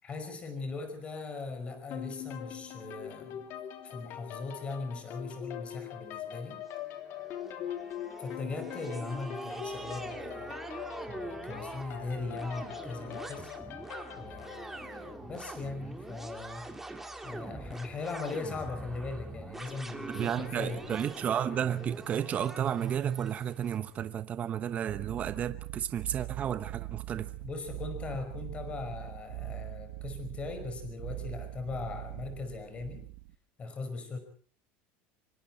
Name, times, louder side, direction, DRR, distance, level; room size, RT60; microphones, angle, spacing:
voice 1, 0.0-3.4 3.8-6.6 8.2-10.6 11.1-13.5 14.1-16.7 17.2-20.9 27.4-33.1 33.6-34.2, left 3 dB, 20° left, 5.2 m, -39 dB
sound 1, 1.9-14.7, left 10 dB, 50° left, 2.9 m, -42 dB
sound 2, 6.7-23.8, right 2 dB, 5° right, 2.2 m, -44 dB
voice 2, 20.1-27.3, right 9 dB, 25° right, 1.0 m, -32 dB
sound 3, 24.9-33.4, right 20 dB, 70° right, 1.1 m, -42 dB
26.0 x 24.0 x 4.3 m
cardioid pair, 160°, 5 cm